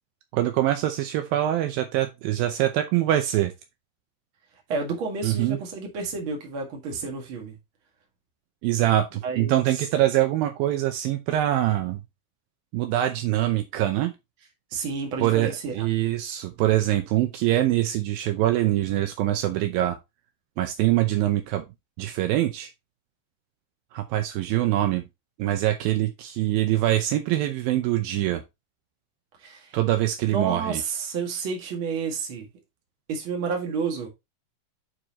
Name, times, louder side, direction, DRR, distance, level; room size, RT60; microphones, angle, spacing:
voice 1, 0.3-3.5 5.2-5.6 8.6-12.0 12.7-14.1 15.2-20.0 20.6-21.7 22.0-22.7 23.9-25.0 25.4-28.4 29.7-30.8, right 14 dB, 80° right, 2.4 m, -24 dB
voice 2, 4.7-7.6 9.2-9.8 14.7-15.9 29.4-29.8 30.3-32.5 33.1-34.1, right 5 dB, 45° right, 2.1 m, -30 dB
8.8 x 4.8 x 2.9 m
omnidirectional pair, 4.4 m